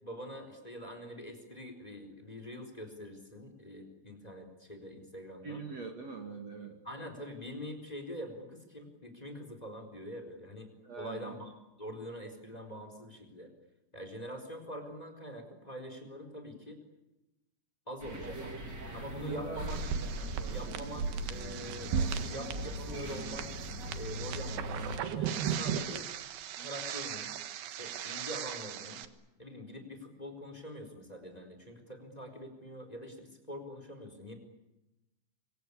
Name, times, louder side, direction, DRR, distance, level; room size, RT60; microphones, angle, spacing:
voice 1, 0.0-5.6 6.8-10.7 11.0-11.5 11.8-13.5 13.9-16.8 17.9-18.7 18.9-19.8 20.5-23.5 23.9-26.1 26.6-27.3 27.8-29.0 29.4-34.3, equal, 10° left, 7 dB, 3.6 m, -44 dB
voice 2, 5.4-6.8 10.8-11.4 19.3-19.6 20.4-20.9 26.6-26.7, right 4 dB, 45° right, 4 dB, 2.5 m, -44 dB
sound 1, 18.0-25.0, right 1 dB, 25° right, 2.9 m, -41 dB
sound 2, 19.7-29.0, right 7 dB, 65° right, 2.7 m, -37 dB
26.0 x 24.5 x 8.6 m, 0.96 s
omnidirectional pair, 5.8 m